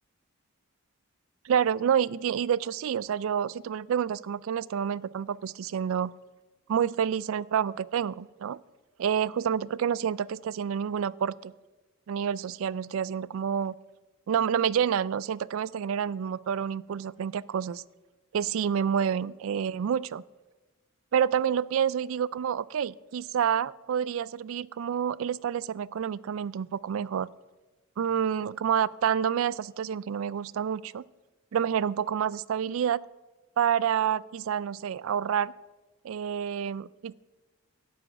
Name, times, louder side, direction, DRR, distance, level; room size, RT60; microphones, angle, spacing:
voice 1, 1.4-6.1 6.7-8.6 9.0-11.5 12.1-13.7 14.3-17.8 18.3-20.2 21.1-27.3 28.0-31.0 31.5-33.0 33.6-35.5 36.0-37.1, right 8 dB, 70° right, 21 dB, 0.3 m, -28 dB
11.5 x 6.1 x 8.9 m, 1.1 s
head